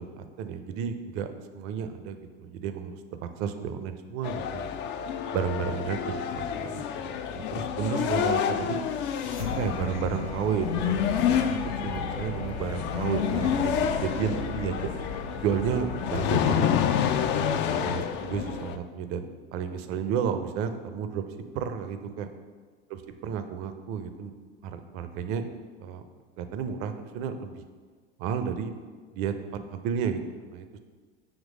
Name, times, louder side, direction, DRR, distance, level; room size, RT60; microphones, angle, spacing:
voice 1, 0.0-3.0 3.4-4.7 5.3-8.8 9.4-11.6 11.8-14.9 15.4-17.1 17.7-21.2 21.5-22.3 23.2-24.3 24.6-25.5 25.8-26.0 26.4-27.6 28.2-28.7 29.1-29.3 29.7-30.7, right 7 dB, 45° right, 8 dB, 0.6 m, -32 dB
sound 1, 4.2-18.8, left 8 dB, 35° left, 0.4 m, -29 dB
sound 2, 8.4-17.5, left 3 dB, 90° left, 0.5 m, -37 dB
7.3 x 3.1 x 5.0 m, 1.5 s
figure-of-eight pair, 75°, 33 cm